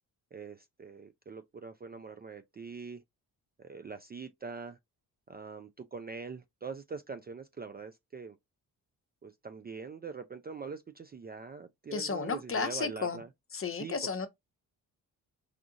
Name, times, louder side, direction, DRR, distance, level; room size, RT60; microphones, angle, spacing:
voice 1, 0.3-3.0 3.6-4.8 5.3-8.4 9.2-13.3 13.7-14.3, right 5 dB, 25° right, 0.4 m, -43 dB
voice 2, 11.9-13.2 13.5-14.3, left 5 dB, 30° left, 0.8 m, -33 dB
4.9 x 2.4 x 2.7 m
hypercardioid pair, 45°, 43 cm